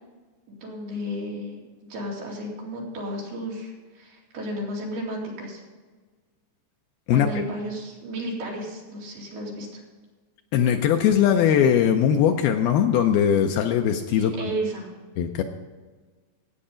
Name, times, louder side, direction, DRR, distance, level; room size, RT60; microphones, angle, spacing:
voice 1, 0.5-1.6 1.9-5.6 7.1-9.8 14.2-14.9, right 1 dB, 65° right, -2 dB, 4.4 m, -33 dB
voice 2, 7.1-7.4 10.5-14.3 15.2-15.4, left 9 dB, 85° left, 5 dB, 2.2 m, -20 dB
14.0 x 8.9 x 5.1 m, 1.4 s
omnidirectional pair, 5.0 m